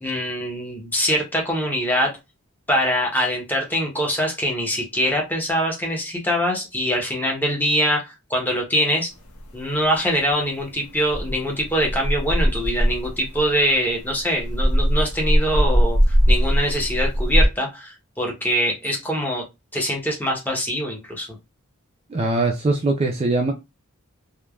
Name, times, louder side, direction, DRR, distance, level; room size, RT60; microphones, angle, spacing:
voice 1, 0.0-2.1 2.7-9.1 9.5-19.4 19.7-21.3, equal, 10° left, 0.7 m, -23 dB
sound 1, 9.2-10.2 10.4-17.5, equal, 85° left, 0.7 m, -21 dB
voice 2, 22.1-23.5, right 2 dB, 30° right, 0.3 m, -21 dB
3.2 x 2.1 x 2.2 m
head